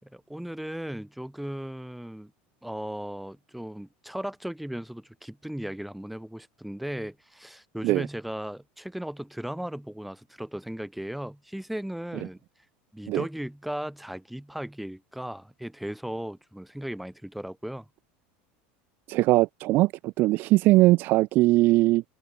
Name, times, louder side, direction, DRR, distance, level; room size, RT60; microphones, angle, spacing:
voice 1, 0.0-2.3 2.6-12.4 12.9-17.9, right 1 dB, ahead, 8.0 m, -36 dB
voice 2, 19.1-22.0, right 19 dB, 40° right, 1.9 m, -21 dB
supercardioid pair, 175°, 5 cm